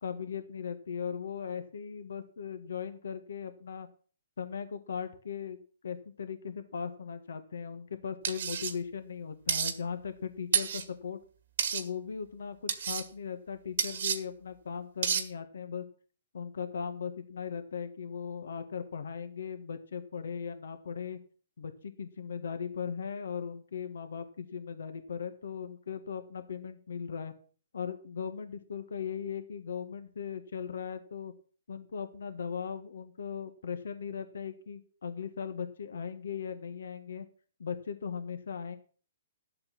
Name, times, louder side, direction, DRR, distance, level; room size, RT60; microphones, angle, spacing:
voice 1, 0.0-3.9 4.4-11.2 11.7-15.8 16.3-21.2 21.6-27.3 27.7-31.3 31.7-37.3 37.6-38.8, left 7 dB, 75° left, 9 dB, 1.5 m, -38 dB
sound 1, 8.2-8.7 9.5-9.7 10.5-10.8 11.6-11.8 12.7-13.0 13.8-14.2 15.0-15.2, right 7 dB, 65° right, 1.6 m, -29 dB
12.5 x 7.7 x 5.9 m, 0.41 s
hypercardioid pair, 140°, 0 cm